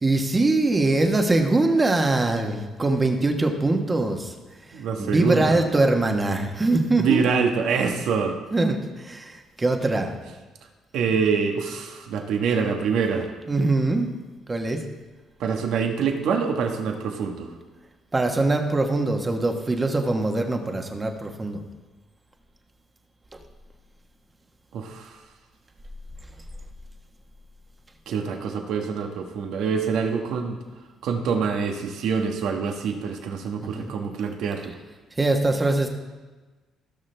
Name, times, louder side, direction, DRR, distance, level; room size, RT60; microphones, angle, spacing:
voice 1, 0.0-4.3 5.0-7.2 8.5-10.2 13.5-14.1 14.5-14.8 18.1-21.6 23.3-23.4 33.6-33.9 35.2-35.9, right 2 dB, 25° right, 4 dB, 1.3 m, -22 dB
voice 2, 4.7-5.6 7.0-8.4 10.9-13.3 15.4-17.5 24.7-25.2 28.1-30.6 31.0-34.7, right 6 dB, 75° right, 4 dB, 1.4 m, -25 dB
17.0 x 6.3 x 3.4 m, 1.3 s
cardioid pair, 90°, 0 cm